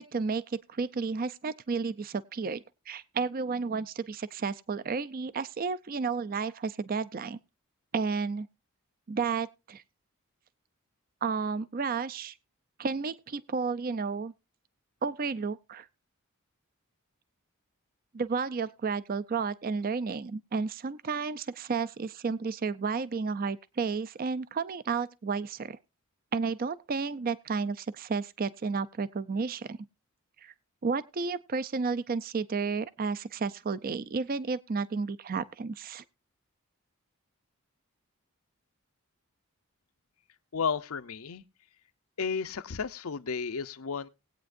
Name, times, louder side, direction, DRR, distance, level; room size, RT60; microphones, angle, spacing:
voice 1, 0.0-7.4 7.9-8.5 9.1-9.8 11.2-12.3 12.8-14.3 15.0-15.9 18.1-25.8 26.3-29.8 30.4-30.5 30.8-36.0, right 5 dB, 40° right, 0.5 m, -32 dB
voice 2, 40.5-41.4 42.2-44.1, left 5 dB, 75° left, 0.7 m, -33 dB
19.5 x 8.7 x 2.5 m
head